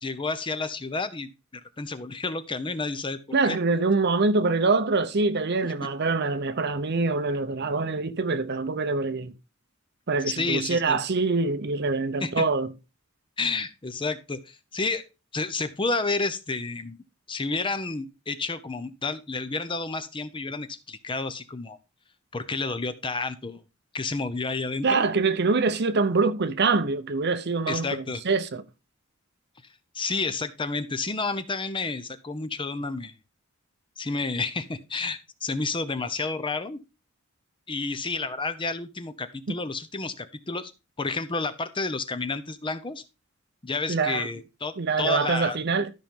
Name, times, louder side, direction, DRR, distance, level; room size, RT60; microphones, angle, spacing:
voice 1, 0.0-3.2 3.4-3.6 10.4-11.0 12.2-12.4 13.4-15.0 15.3-21.8 22.3-23.6 23.9-25.0 27.7-28.2 29.9-33.1 34.0-36.8 37.7-40.7 41.0-43.0 43.6-45.6, left 3 dB, 25° left, 0.7 m, -30 dB
voice 2, 3.3-9.3 10.1-12.7 24.8-28.6 39.5-39.6 43.9-44.3 44.8-45.9, right 3 dB, 55° right, 0.8 m, -24 dB
13.0 x 5.3 x 3.7 m
head